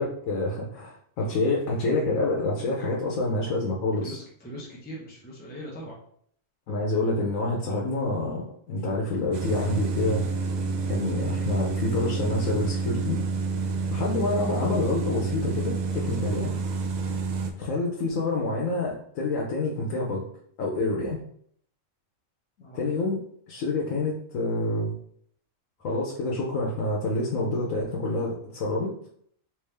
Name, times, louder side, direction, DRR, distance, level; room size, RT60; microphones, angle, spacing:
voice 1, 0.0-4.2 6.7-10.2 10.9-13.2 13.9-16.5 17.5-20.2 20.6-21.2 22.7-23.2 23.5-24.9 25.8-28.9, left 2 dB, 90° left, -2 dB, 1.1 m, -27 dB
voice 2, 4.0-6.0 10.7-10.8 22.6-22.8, equal, 10° left, -5 dB, 0.7 m, -41 dB
sound 1, 9.3-17.5, right 3 dB, 90° right, 0.4 m, -29 dB
3.5 x 2.8 x 3.3 m, 0.64 s
omnidirectional pair, 1.3 m